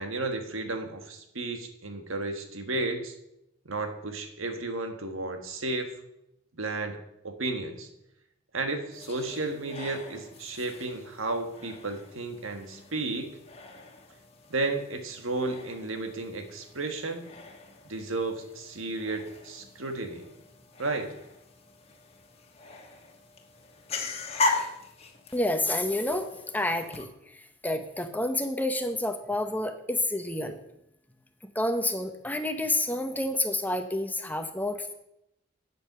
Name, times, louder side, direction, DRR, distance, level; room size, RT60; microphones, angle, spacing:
voice 1, 0.0-3.1 3.6-5.9 6.5-7.0 7.2-7.9 8.5-13.4 14.5-17.3 17.8-20.3 20.8-21.1, right 2 dB, 90° right, 6 dB, 1.6 m, -33 dB
sound 1, 8.9-27.0, left 3 dB, 30° left, 1.3 m, -39 dB
voice 2, 25.3-27.1 27.6-30.6 31.5-34.9, left 1 dB, 10° left, 7 dB, 0.8 m, -29 dB
8.7 x 7.8 x 6.8 m, 0.82 s
head